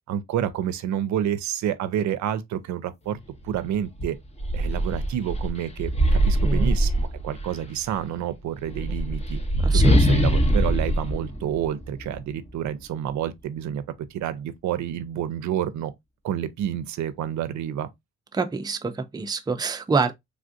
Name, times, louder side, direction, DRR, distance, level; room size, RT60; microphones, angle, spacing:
voice 1, 0.1-3.2 3.4-4.2 4.5-9.4 9.7-13.8 14.1-15.9 16.2-17.9, right 10 dB, 70° right, 0.5 m, -29 dB
sound 1, 3.4-3.6 4.0-7.6 8.6-12.2, right 1 dB, 20° left, 0.7 m, -22 dB
voice 2, 6.4-6.7 9.6-10.4 18.3-20.1, right 4 dB, 15° right, 0.4 m, -27 dB
3.4 x 2.4 x 2.5 m
cardioid pair, 90°, 30 cm